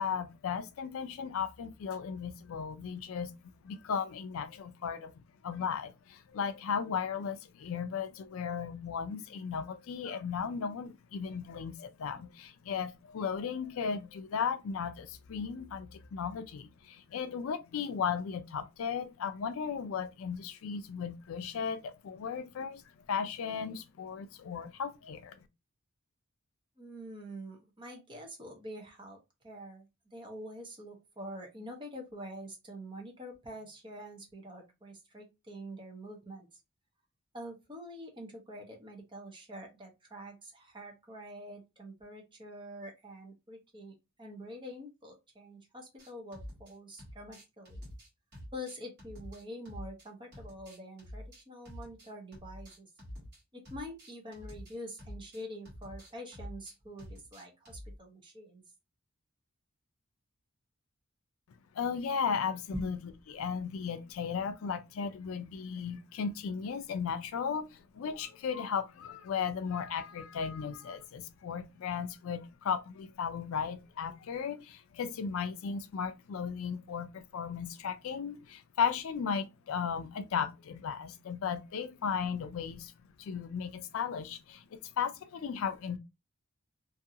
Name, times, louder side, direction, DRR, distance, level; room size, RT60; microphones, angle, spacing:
voice 1, 0.0-3.4 3.6-22.8 23.1-25.4 61.7-63.0 63.3-82.9 83.2-86.0, left 6 dB, 70° left, 0.4 m, -36 dB
voice 2, 26.8-29.2 29.4-29.8 30.1-36.6 37.3-47.8 48.5-52.9 53.5-58.6 62.7-62.9, equal, 25° right, 0.8 m, -46 dB
sound 1, 46.0-46.7 47.0-50.1 50.3-53.4 53.7-58.0, equal, 50° right, 1.3 m, -47 dB
2.6 x 2.5 x 2.7 m
head